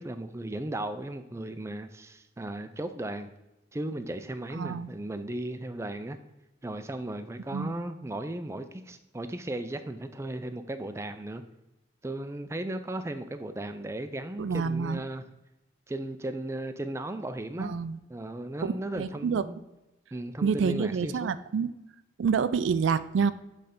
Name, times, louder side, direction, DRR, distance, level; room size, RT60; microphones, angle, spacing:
voice 1, 0.0-3.3 3.7-6.2 6.6-11.4 12.0-15.2 15.9-17.7 18.1-19.6 20.1-21.3, right 1 dB, 15° right, 9 dB, 0.4 m, -36 dB
voice 2, 4.5-4.9 7.5-7.7 14.4-15.0 17.6-18.0 18.6-19.4 20.4-21.7 22.2-23.3, right 5 dB, 80° right, 14 dB, 0.3 m, -28 dB
7.8 x 3.3 x 5.2 m, 0.96 s
head